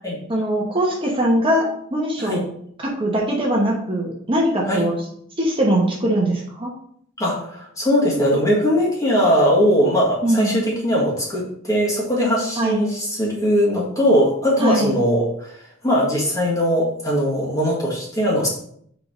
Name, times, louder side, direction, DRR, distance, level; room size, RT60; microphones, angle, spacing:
voice 1, 0.3-2.4 2.8-5.0 5.4-6.7 10.2-10.5 12.6-12.8 14.6-14.9, right 1 dB, 25° right, -2 dB, 1.1 m, -21 dB
voice 2, 7.2-15.6 15.8-18.5, equal, 15° left, -4 dB, 1.8 m, -20 dB
4.7 x 4.6 x 5.0 m, 0.65 s
head